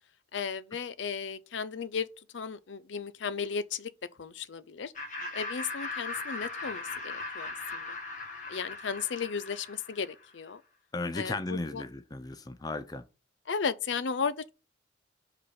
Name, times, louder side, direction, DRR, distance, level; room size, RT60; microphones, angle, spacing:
voice 1, 0.3-3.9 4.2-4.9 5.3-8.0 8.5-10.6 11.1-11.8 13.5-14.5, left 6 dB, 75° left, 0.5 m, -35 dB
Laughter, 5.0-10.2, left 3 dB, 40° left, 1.7 m, -39 dB
voice 2, 10.9-13.0, left 2 dB, 20° left, 0.4 m, -35 dB
5.3 x 4.1 x 5.8 m
head